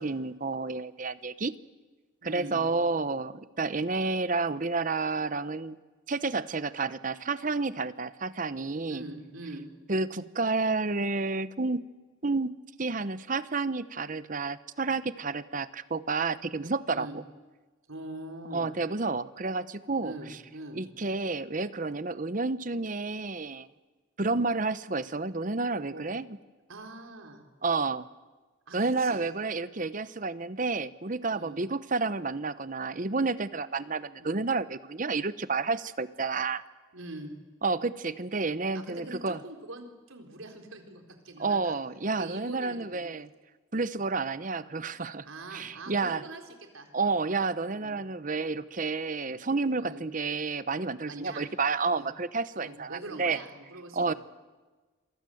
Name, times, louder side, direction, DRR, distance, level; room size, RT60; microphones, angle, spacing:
voice 1, 0.0-1.5 2.2-5.8 6.1-9.0 9.9-11.8 12.2-12.5 12.8-17.1 18.5-20.1 20.7-23.7 24.2-26.4 27.6-28.1 28.7-36.6 37.6-39.4 41.4-43.3 43.7-46.2 46.9-53.4 53.9-54.1, right 3 dB, 40° right, 14 dB, 0.8 m, -30 dB
voice 2, 2.2-2.7 8.7-9.6 16.9-17.2 17.9-18.7 20.0-20.8 25.9-26.1 26.7-27.4 28.7-29.2 31.3-31.6 34.2-34.4 36.9-37.3 38.7-41.8 42.2-43.2 45.3-46.4 46.7-46.9 47.7-48.0 49.8-50.0 51.1-51.5 51.9-52.1 52.5-54.2, right 2 dB, 80° right, 4 dB, 4.0 m, -43 dB
27.0 x 23.5 x 7.8 m, 1.3 s
head